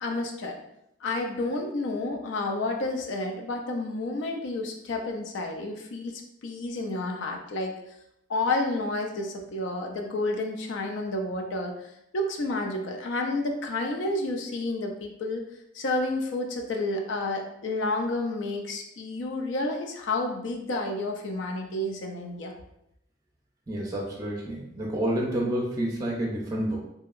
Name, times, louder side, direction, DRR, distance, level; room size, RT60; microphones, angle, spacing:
voice 1, 0.0-0.6 1.0-6.1 6.4-7.7 8.3-11.9 12.1-15.4 15.7-22.5, left 2 dB, 80° left, 2 dB, 0.4 m, -30 dB
voice 2, 23.7-26.8, right 1 dB, 20° right, -2 dB, 0.5 m, -29 dB
2.8 x 2.7 x 2.4 m, 0.80 s
head